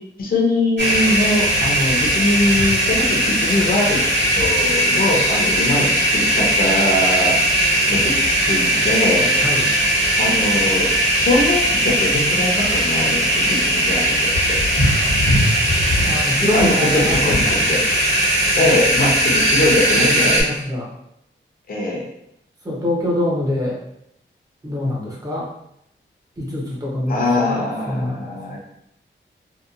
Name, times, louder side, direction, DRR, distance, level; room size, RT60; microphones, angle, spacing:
voice 1, 0.2-7.3 7.9-8.2 8.5-9.3 10.2-10.9 11.1-14.6 16.5-17.8 18.5-20.4 21.7-22.0 27.1-28.6, left 1 dB, 45° left, -3 dB, 0.6 m, -22 dB
sound 1, 0.8-20.4, equal, 65° right, 1.0 m, -18 dB
voice 2, 16.0-17.4 20.0-20.9 22.6-23.8 24.6-25.5 26.4-28.3, left 1 dB, 20° right, -4 dB, 0.7 m, -24 dB
2.8 x 2.2 x 2.4 m, 0.77 s
wide cardioid pair, 145°, 20 cm